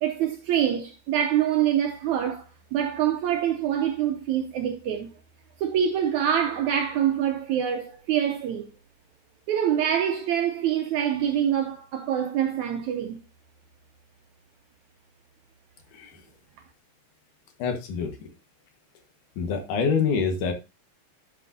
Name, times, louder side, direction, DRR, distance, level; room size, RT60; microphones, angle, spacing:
voice 1, 0.0-5.1 5.6-8.7 9.5-13.2, right 9 dB, 80° right, 1.7 m, -25 dB
voice 2, 17.6-18.3 19.4-20.5, left 5 dB, 65° left, 2.7 m, -26 dB
11.5 x 6.1 x 2.6 m
omnidirectional pair, 4.1 m